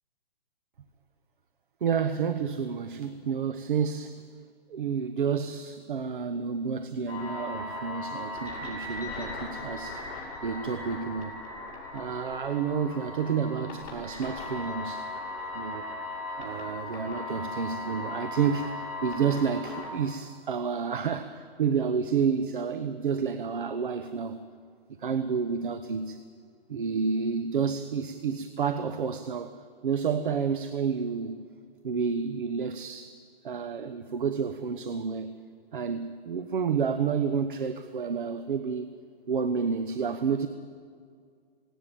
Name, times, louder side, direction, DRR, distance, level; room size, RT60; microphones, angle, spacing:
voice 1, 1.8-4.2 4.7-11.3 11.9-15.1 15.5-15.8 16.4-24.4 25.0-26.2 26.7-29.5 29.8-31.3 31.8-33.1 33.4-35.3 35.7-38.9 39.3-40.5, right 6 dB, 55° right, 10 dB, 1.0 m, -30 dB
sound 1, 7.1-19.9, left 2 dB, 35° left, 7.6 m, -38 dB
18.5 x 17.5 x 9.1 m, 2.2 s
hypercardioid pair, 175°, 30 cm